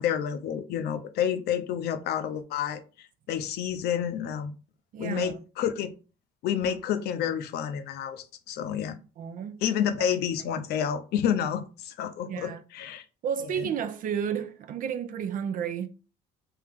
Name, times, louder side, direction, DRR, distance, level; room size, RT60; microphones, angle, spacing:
voice 1, 0.0-4.5 5.0-5.9 6.4-9.0 9.6-13.0 13.4-13.7, left 9 dB, 75° left, 0.6 m, -29 dB
voice 2, 4.9-5.4 9.2-9.6 10.5-10.6 12.3-12.6 13.2-15.9, right 8 dB, 55° right, 0.5 m, -32 dB
3.4 x 2.9 x 3.5 m
cardioid pair, 110°, 17 cm